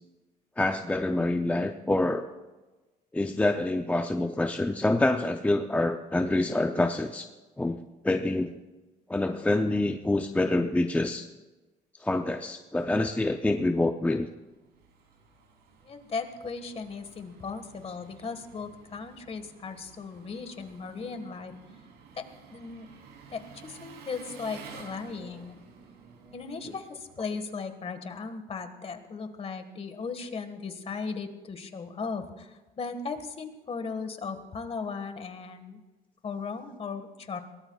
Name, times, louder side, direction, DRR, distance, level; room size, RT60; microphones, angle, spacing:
voice 1, 0.6-2.3 3.1-7.3 7.6-7.8 8.0-8.5 9.1-11.3 12.0-14.3, left 2 dB, 10° left, 5 dB, 0.6 m, -26 dB
Engine, 14.2-27.8, right 5 dB, 80° right, 3.5 m, -52 dB
voice 2, 15.8-21.5 22.1-22.2 22.5-22.9 23.3-25.6 26.3-35.8 36.2-37.4, left 5 dB, 35° left, 8 dB, 1.7 m, -37 dB
23.0 x 18.0 x 2.4 m, 1.2 s
cardioid pair, 110°, 17 cm